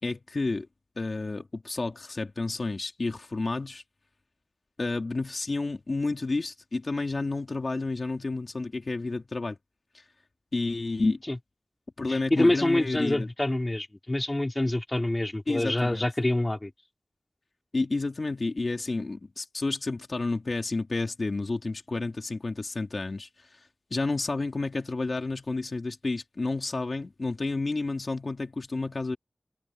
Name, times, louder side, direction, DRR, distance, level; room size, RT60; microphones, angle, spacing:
voice 1, 0.0-0.7 1.0-3.8 4.8-9.6 9.9-10.0 10.5-11.2 12.0-13.3 15.5-16.1 17.7-23.3 23.9-29.2, left 3 dB, 60° left, 2.8 m, -30 dB
voice 2, 12.1-16.7, left 1 dB, 30° left, 3.4 m, -26 dB
wide cardioid pair, 50°, 0 cm